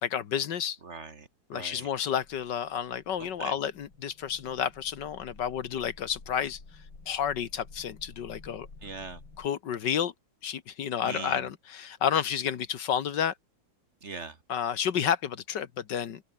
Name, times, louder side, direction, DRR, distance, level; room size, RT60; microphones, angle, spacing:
voice 1, 0.0-0.8 1.5-6.6 7.1-8.7 9.4-10.1 10.4-13.3 14.5-16.2, left 8 dB, 70° left, 1.8 m, -30 dB
voice 2, 0.8-1.3 1.5-1.9 3.2-3.6 8.8-9.2 11.0-11.5 14.0-14.4, right 4 dB, 40° right, 1.8 m, -40 dB
sound 1, 2.1-9.5, left 3 dB, 85° left, 5.2 m, -52 dB
omnidirectional pair, 2.0 m